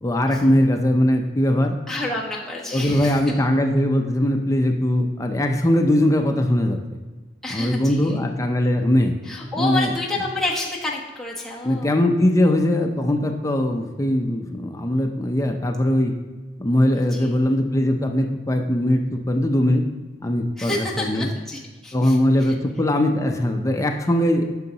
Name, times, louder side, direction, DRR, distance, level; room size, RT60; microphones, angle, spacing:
voice 1, 0.0-1.8 2.7-6.8 7.5-9.1 9.6-9.9 11.6-16.1 16.6-19.8 20.2-21.3 21.9-24.5, left 1 dB, 20° left, 4 dB, 0.5 m, -20 dB
voice 2, 1.9-3.4 7.4-8.2 9.2-12.0 16.9-17.3 20.6-22.5, left 2 dB, ahead, -5 dB, 1.2 m, -29 dB
9.3 x 6.3 x 2.9 m, 1.3 s
head